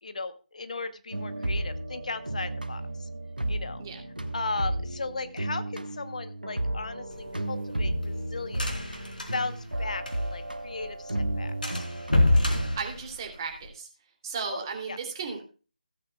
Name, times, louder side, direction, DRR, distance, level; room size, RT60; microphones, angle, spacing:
voice 1, 0.0-3.1 3.5-3.8 4.3-8.7 9.3-11.8 14.5-15.0, left 3 dB, 55° left, 12 dB, 1.0 m, -36 dB
sound 1, 1.1-12.8, right 1 dB, 85° right, 1.3 m, -33 dB
sound 2, 7.1-10.5 10.8-10.9 11.2-11.3 11.6-13.7, left 2 dB, 75° left, 3.2 m, -27 dB
voice 2, 12.8-13.9 14.2-15.4, right 5 dB, 30° right, 2 dB, 2.7 m, -35 dB
16.5 x 9.2 x 2.3 m, 0.34 s
figure-of-eight pair, 150°, 5 cm